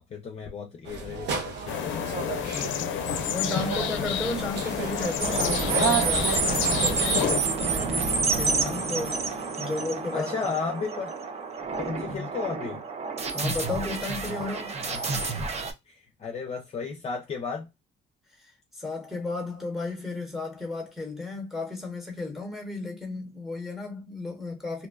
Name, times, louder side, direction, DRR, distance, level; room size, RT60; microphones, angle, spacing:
voice 1, 0.0-4.0 4.6-4.7 8.6-8.8 10.1-11.1 11.8-12.8 14.8-15.1 15.4-17.7, left 5 dB, 35° left, 0.5 m, -35 dB
sound 1, 0.9-7.3, right 5 dB, 70° right, 0.8 m, -32 dB
sound 2, 1.7-7.4, left 9 dB, 85° left, 0.4 m, -29 dB
voice 2, 2.5-3.0 3.3-9.2 9.6-10.4 12.1-12.3 13.3-14.8 18.4-24.9, left 3 dB, ahead, 1.0 m, -34 dB
sound 3, 5.2-15.7, right 4 dB, 35° right, 0.5 m, -29 dB
2.5 x 2.1 x 2.3 m
cardioid pair, 120°, 19 cm